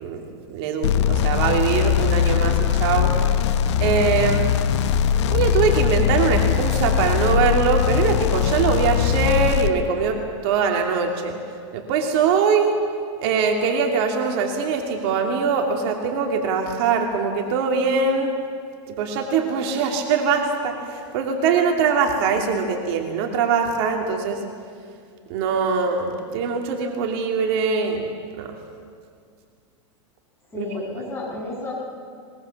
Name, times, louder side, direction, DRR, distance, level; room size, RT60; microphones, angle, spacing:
voice 1, 0.0-3.1 3.8-4.5 5.3-11.4 11.7-12.8 13.2-18.3 19.0-24.4 25.3-28.1 28.4-28.5 30.6-30.7, right 5 dB, 55° right, 3 dB, 2.6 m, -22 dB
sound 1, 0.8-9.7, left 9 dB, 70° left, 1.0 m, -21 dB
voice 2, 30.5-31.7, left 2 dB, 15° left, -4 dB, 7.9 m, -31 dB
22.0 x 21.5 x 7.2 m, 2.2 s
supercardioid pair, 130°, 15 cm